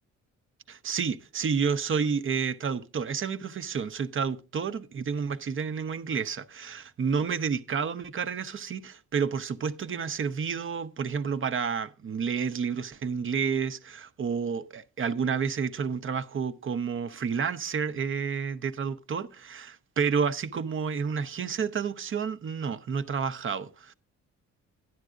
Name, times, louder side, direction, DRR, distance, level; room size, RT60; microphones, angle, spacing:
voice 1, 0.7-23.9, right 6 dB, 40° right, 0.8 m, -30 dB
12.0 x 10.5 x 2.5 m
cardioid pair, 90°, 30 cm